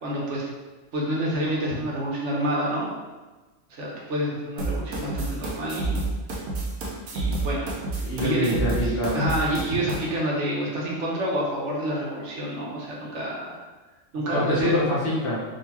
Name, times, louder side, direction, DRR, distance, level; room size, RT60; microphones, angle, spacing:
voice 1, 0.0-0.4 0.9-2.9 3.7-6.0 7.1-8.5 8.8-13.6 14.1-14.8, right 1 dB, 65° right, -4 dB, 1.0 m, -28 dB
sound 1, 4.6-10.0, right 2 dB, 90° right, 1.2 m, -29 dB
voice 2, 8.0-9.2 14.3-15.5, left 1 dB, 50° left, -6 dB, 1.0 m, -25 dB
3.7 x 2.8 x 2.9 m, 1.2 s
omnidirectional pair, 1.4 m